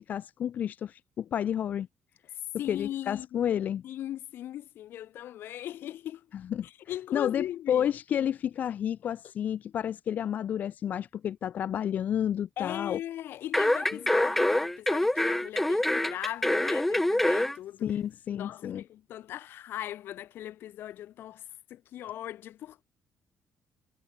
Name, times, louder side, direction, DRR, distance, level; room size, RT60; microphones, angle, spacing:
voice 1, 0.0-1.9 2.7-3.8 6.5-6.7 7.1-13.0 17.8-18.8, left 9 dB, 45° left, 0.3 m, -30 dB
voice 2, 2.6-3.5 3.8-6.3 6.6-7.9 12.6-17.9 18.3-21.4 21.7-22.8, left 12 dB, 65° left, 2.5 m, -39 dB
sound 1, 13.5-17.6 17.9-18.0, left 1 dB, 5° left, 0.6 m, -25 dB
cardioid pair, 165°, 4 cm